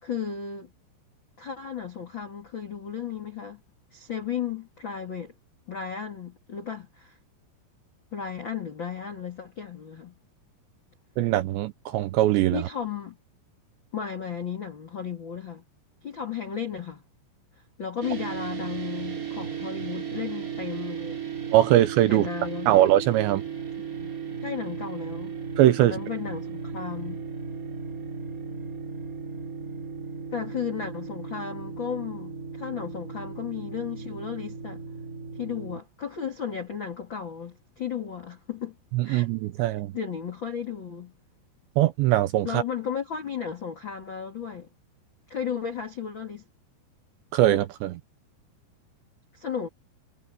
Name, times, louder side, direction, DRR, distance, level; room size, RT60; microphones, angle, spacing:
voice 1, 0.0-0.7 1.4-3.6 3.9-5.3 5.7-7.2 8.1-10.1 12.5-13.2 13.9-15.6 16.0-17.0 17.8-21.2 22.1-22.8 24.0-24.1 24.4-25.4 25.8-27.2 30.3-34.8 35.3-38.7 39.0-39.3 39.6-41.1 42.4-44.7 45.3-46.4 49.3-49.7, left 7 dB, 45° left, 1.5 m, -34 dB
voice 2, 11.2-12.6 21.5-22.3 22.7-23.4 25.6-25.9 38.9-39.9 41.8-42.6 47.3-48.0, right 14 dB, 80° right, 2.7 m, -21 dB
sound 1, 18.0-35.8, right 6 dB, 30° right, 1.7 m, -36 dB
omnidirectional pair, 5.7 m